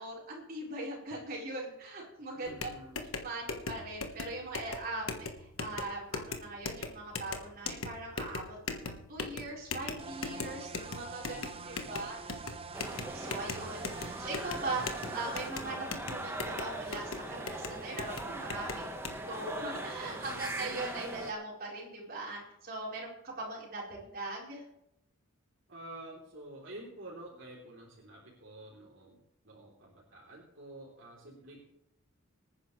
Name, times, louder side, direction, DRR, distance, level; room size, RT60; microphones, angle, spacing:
voice 1, 0.0-2.7 3.2-12.2 13.1-18.9 19.3-24.6, right 2 dB, 45° right, -4 dB, 4.4 m, -40 dB
voice 2, 2.3-3.1 11.2-12.1 20.0-20.5 25.7-31.6, right 1 dB, 65° right, -4 dB, 3.4 m, -50 dB
sound 1, 2.5-19.2, left 4 dB, 90° left, 1.4 m, -41 dB
sound 2, 10.0-15.5, right 4 dB, 30° right, 0.6 m, -45 dB
sound 3, 12.7-21.3, right 1 dB, 10° right, 1.3 m, -41 dB
25.0 x 9.7 x 3.3 m, 0.80 s
head